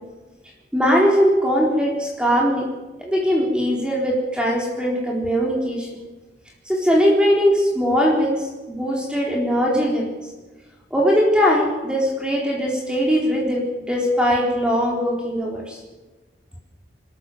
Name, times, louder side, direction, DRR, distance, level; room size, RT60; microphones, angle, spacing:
voice 1, 0.7-2.7 3.0-5.9 6.7-10.1 10.9-15.8, equal, 5° right, -2 dB, 3.9 m, -20 dB
27.5 x 13.5 x 8.0 m, 1.2 s
head